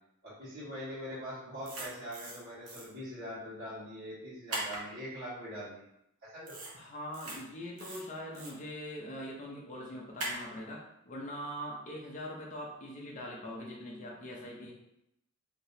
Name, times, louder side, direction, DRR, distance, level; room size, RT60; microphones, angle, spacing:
voice 1, 0.2-5.8 6.2-6.7, equal, 50° right, -13 dB, 1.5 m, -43 dB
sound 1, 1.6-2.4 2.7-2.8 4.5-4.8 6.5-6.7 7.1-7.4 7.8-8.5 10.2-10.4, right 2 dB, 80° right, 0.9 m, -39 dB
voice 2, 6.7-14.7, equal, 35° left, -3 dB, 0.6 m, -42 dB
3.5 x 2.8 x 2.7 m, 0.82 s
head